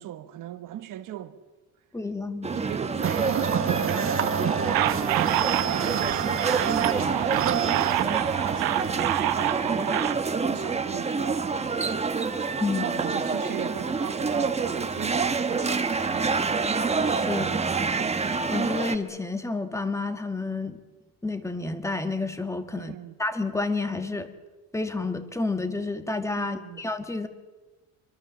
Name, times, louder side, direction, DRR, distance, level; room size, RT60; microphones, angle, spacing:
voice 1, 0.0-1.4 2.5-11.9 12.6-16.5 17.2-17.6 22.7-23.1 26.4-26.8, right 12 dB, 60° right, 1.3 m, -38 dB
voice 2, 1.9-2.5 12.6-12.9 17.0-17.5 18.3-20.8 21.2-22.9 23.2-24.3 24.7-27.3, left 3 dB, 10° left, 1.9 m, -30 dB
sound 1, 2.4-19.0, right 4 dB, 20° right, 1.2 m, -27 dB
sound 2, 3.0-9.2, right 7 dB, 35° right, 1.4 m, -29 dB
sound 3, 4.7-10.1, right 15 dB, 85° right, 1.1 m, -28 dB
25.5 x 24.5 x 7.4 m
cardioid pair, 150°, 35 cm